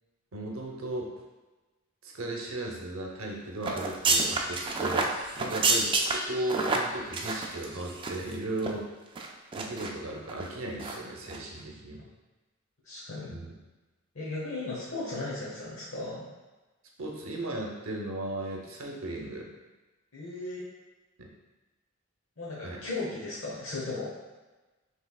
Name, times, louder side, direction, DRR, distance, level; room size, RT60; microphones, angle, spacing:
voice 1, 0.3-1.1 2.0-8.9 9.5-12.0 13.3-13.5 17.0-19.5 21.2-21.3 22.6-22.8, right 1 dB, 85° right, 0 dB, 0.8 m, -36 dB
sound 1, 3.6-8.3 8.6-8.7 9.2-9.9 10.3-10.5 10.8-11.0 11.3-11.4, right 3 dB, 25° right, 0.4 m, -29 dB
voice 2, 12.8-13.4 14.1-16.3 20.1-20.6 22.4-24.1, left 2 dB, 75° left, -8 dB, 1.0 m, -36 dB
5.6 x 3.2 x 2.3 m, 1.2 s
head